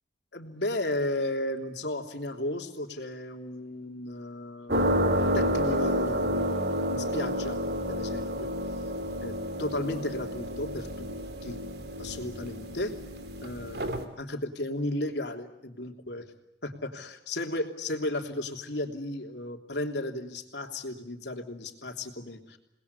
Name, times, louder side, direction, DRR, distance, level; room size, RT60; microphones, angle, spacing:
voice 1, 0.3-5.0 5.3-6.5 6.9-7.6 7.9-8.5 9.2-11.1 11.4-11.6 12.0-13.0 13.4-16.2 16.6-22.6, left 1 dB, 80° left, 4 dB, 3.2 m, -34 dB
sound 1, 4.7-14.0, equal, 70° right, 2.9 m, -30 dB
28.5 x 20.5 x 8.3 m, 0.86 s
head